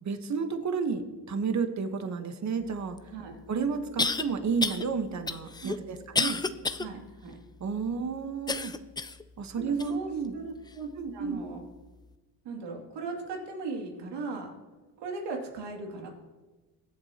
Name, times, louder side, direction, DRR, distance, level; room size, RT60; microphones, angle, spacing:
voice 1, 0.0-3.0 3.5-6.4 7.6-8.7 9.4-10.3 11.0-11.4, right 5 dB, 40° right, 8 dB, 1.3 m, -31 dB
sound 1, 3.0-3.1 4.0-4.2 4.6-4.8 5.3-6.9 7.3-7.4 8.5-9.2 9.8-9.9 10.7-10.8, left 4 dB, 10° left, 0.4 m, -29 dB
voice 2, 5.6-6.0 6.8-7.4 9.6-11.6 12.4-14.5 15.0-16.1, right 3 dB, 80° right, 1 dB, 2.7 m, -38 dB
22.5 x 8.2 x 3.0 m, 1.2 s
cardioid pair, 90°, 42 cm